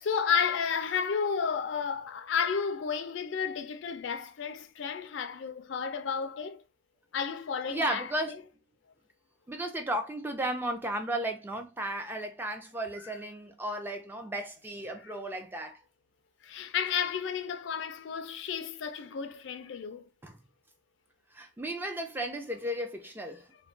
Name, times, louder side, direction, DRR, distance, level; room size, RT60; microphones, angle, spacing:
voice 1, 0.0-6.6 7.1-8.4 16.4-20.0, left 6 dB, 70° left, 0.4 m, -32 dB
voice 2, 7.7-8.4 9.5-15.8 20.2-20.4 21.3-23.5, right 1 dB, 10° right, 0.3 m, -34 dB
2.2 x 2.2 x 3.6 m
head